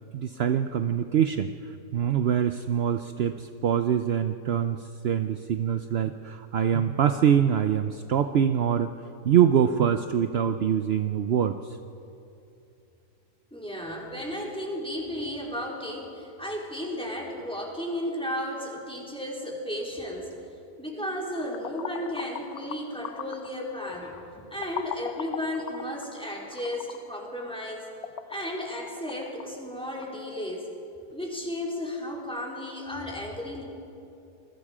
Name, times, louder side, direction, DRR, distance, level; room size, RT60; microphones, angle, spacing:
voice 1, 0.0-8.9 9.2-11.8, right 8 dB, 60° right, 9 dB, 0.7 m, -24 dB
voice 2, 13.5-20.3 20.8-27.9 28.3-30.7 31.1-33.6, left 1 dB, 5° left, -2 dB, 3.7 m, -34 dB
sound 1, 21.3-30.2, left 10 dB, 70° left, 1.1 m, -41 dB
27.5 x 21.5 x 5.0 m, 2.8 s
omnidirectional pair, 1.7 m